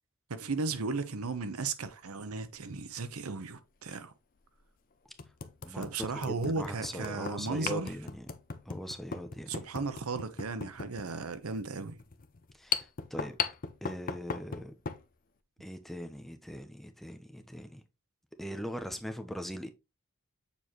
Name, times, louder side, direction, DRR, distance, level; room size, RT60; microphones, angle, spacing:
voice 1, 0.3-4.1 5.7-7.9 9.5-12.0, right 4 dB, 90° right, 0.8 m, -35 dB
sound 1, 2.2-2.4 3.9-4.0 4.6-4.7 5.2-15.1, left 6 dB, 40° left, 0.6 m, -38 dB
voice 2, 5.6-8.3 8.7-9.5 12.6-13.4 13.8-14.7 15.6-17.8 18.4-19.7, equal, ahead, 0.7 m, -41 dB
7.1 x 4.4 x 3.0 m
head